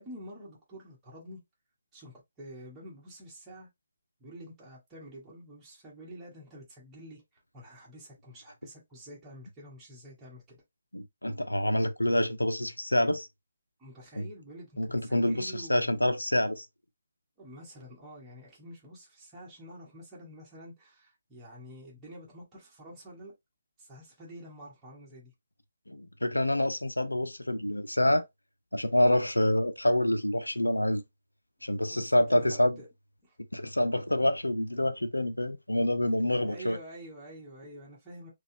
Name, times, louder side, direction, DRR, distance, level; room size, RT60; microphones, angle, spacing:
voice 1, 0.0-1.4 1.9-3.7 4.2-10.6 13.8-15.9 17.4-23.3 23.8-25.3 31.9-32.9 33.2-33.4 36.5-38.3, right 1 dB, 10° right, 1.3 m, -48 dB
voice 2, 10.9-13.3 14.2-14.3 14.8-16.7 25.9-28.2 28.7-31.0 31.6-32.8 33.5-36.8, left 1 dB, 80° left, 0.5 m, -27 dB
4.1 x 2.3 x 2.7 m
figure-of-eight pair, 140°, 0 cm